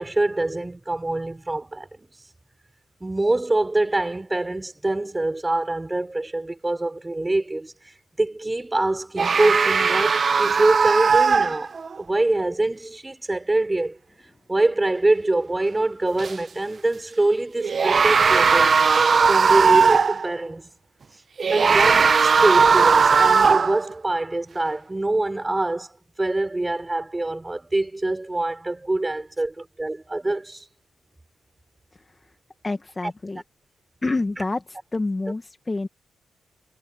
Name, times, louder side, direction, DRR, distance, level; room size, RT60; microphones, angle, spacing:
voice 1, 0.0-1.9 3.0-7.7 8.2-11.7 12.0-14.0 14.5-18.7 19.3-20.6 21.5-25.9 26.2-30.6 33.0-33.1, right 2 dB, 15° right, 5.8 m, -24 dB
sound 1, 9.2-12.0 16.2-16.3 17.6-20.3 21.4-23.9, right 5 dB, 45° right, 0.8 m, -18 dB
voice 2, 32.6-33.4 34.0-34.6 34.9-35.4 35.7-35.9, left 3 dB, 25° left, 1.5 m, -26 dB
cardioid pair, 90°, 0 cm